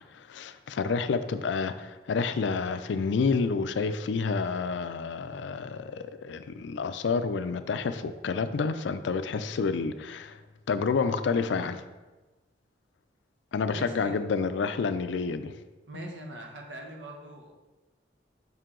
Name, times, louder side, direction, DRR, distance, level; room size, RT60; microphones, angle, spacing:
voice 1, 0.1-10.4 10.7-11.8 13.5-15.5 15.9-16.0, left 5 dB, 80° left, 11 dB, 0.4 m, -29 dB
voice 2, 13.7-14.1 15.9-17.5, right 1 dB, 75° right, 1 dB, 1.0 m, -41 dB
5.6 x 4.6 x 3.7 m, 1.2 s
head